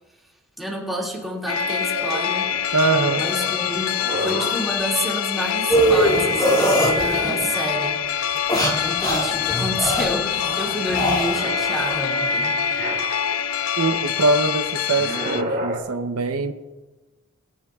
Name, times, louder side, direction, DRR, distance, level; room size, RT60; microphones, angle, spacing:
voice 1, 0.6-2.5 3.2-8.0 8.5-12.6, equal, ahead, -4 dB, 2.2 m, -29 dB
sound 1, 1.5-15.4, left 8 dB, 70° left, 0.5 m, -25 dB
sound 2, 1.9-4.7 6.1-7.6 8.6-9.6 10.0-13.5 14.8-15.8, right 1 dB, 45° right, 2.7 m, -32 dB
voice 2, 2.7-3.2 13.8-16.5, right 3 dB, 80° right, 8 dB, 0.7 m, -22 dB
sound 3, 5.7-7.4 8.3-12.0, right 1 dB, 20° left, 2.3 m, -22 dB
24.0 x 10.0 x 2.4 m, 1.2 s
head